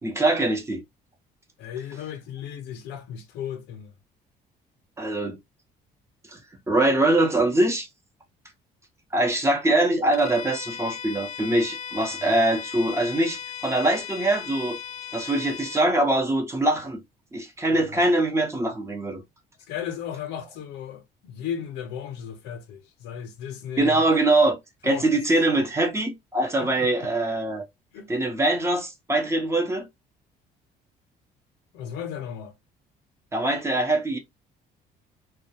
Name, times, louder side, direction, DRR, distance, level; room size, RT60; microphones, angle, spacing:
voice 1, 0.0-0.8 5.0-5.4 6.3-6.4 6.7-7.9 9.1-14.8 15.1-17.0 17.3-19.2 23.8-24.6 24.8-27.6 28.1-29.9 33.3-34.2, right 2 dB, 15° right, 0.7 m, -23 dB
voice 2, 1.6-3.9 12.0-12.4 17.7-18.0 19.7-24.1 24.8-25.1 26.6-27.1 27.9-28.1 31.7-32.5, left 9 dB, 90° left, 0.6 m, -36 dB
Bowed string instrument, 10.1-15.9, left 8 dB, 45° left, 0.5 m, -37 dB
2.2 x 2.1 x 2.7 m
cardioid pair, 110°, 17 cm